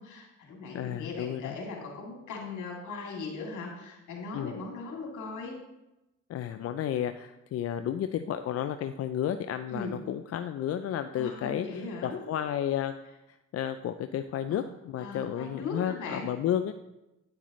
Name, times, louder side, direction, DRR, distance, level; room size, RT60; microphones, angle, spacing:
voice 1, 0.0-5.5 9.7-9.9 11.2-12.2 14.5-14.6 15.0-16.3, left 3 dB, 75° left, -2 dB, 2.9 m, -39 dB
voice 2, 0.7-1.6 4.3-4.6 6.3-13.0 13.3-16.7, left 10 dB, 55° left, 9 dB, 0.4 m, -32 dB
9.3 x 8.0 x 3.1 m, 0.95 s
cardioid pair, 90°, 30 cm